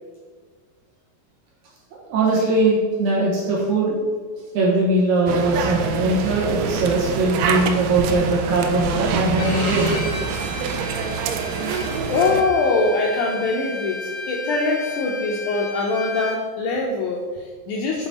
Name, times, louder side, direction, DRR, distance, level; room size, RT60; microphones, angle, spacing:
voice 1, 2.1-3.9 4.5-9.9 11.7-11.8, right 2 dB, 65° right, -5 dB, 2.4 m, -20 dB
sound 1, 5.3-12.4, right 6 dB, 85° right, 2.4 m, -26 dB
Bowed string instrument, 9.4-16.3, left 2 dB, 45° left, 1.6 m, -33 dB
voice 2, 12.1-18.1, left 3 dB, 80° left, -1 dB, 1.8 m, -23 dB
7.0 x 4.0 x 4.1 m, 1.5 s
omnidirectional pair, 4.1 m